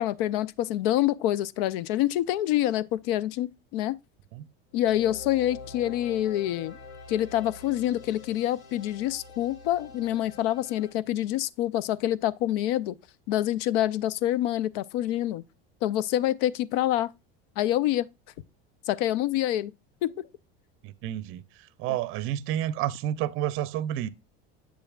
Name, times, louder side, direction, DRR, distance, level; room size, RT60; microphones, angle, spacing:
voice 1, 0.0-4.0 4.7-6.8 7.1-12.9 13.3-15.4 15.8-17.1 17.6-18.1 18.9-19.7 20.0-20.3, left 13 dB, 70° left, 0.6 m, -26 dB
sound 1, 4.7-10.9, left 4 dB, 55° left, 2.2 m, -45 dB
voice 2, 20.8-24.1, right 12 dB, 45° right, 0.6 m, -30 dB
7.6 x 6.9 x 2.3 m
supercardioid pair, 145°, 30 cm